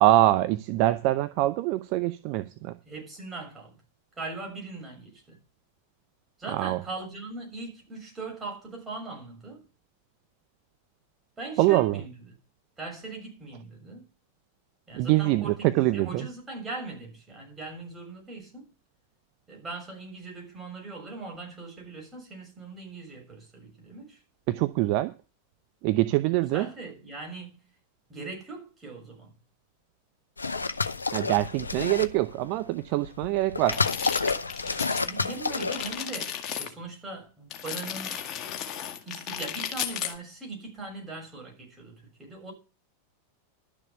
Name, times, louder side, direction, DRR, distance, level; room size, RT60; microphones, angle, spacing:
voice 1, 0.0-2.7 6.5-6.8 11.6-12.0 14.9-16.3 24.5-25.1 25.8-26.7 31.1-33.8, right 16 dB, 45° right, 0.6 m, -24 dB
voice 2, 2.8-3.7 4.2-5.4 6.4-9.6 11.4-12.1 12.8-14.0 14.9-18.7 19.5-24.2 26.5-27.5 28.1-29.4 34.6-38.2 39.0-42.5, right 3 dB, 15° right, 6.6 m, -40 dB
sound 1, 30.4-32.3 33.0-36.0, left 4 dB, 80° left, 0.7 m, -29 dB
sound 2, 33.6-35.1 35.3-36.7 37.5-40.2, left 9 dB, 35° left, 1.8 m, -35 dB
12.0 x 6.7 x 7.0 m
figure-of-eight pair, 90°, 0 cm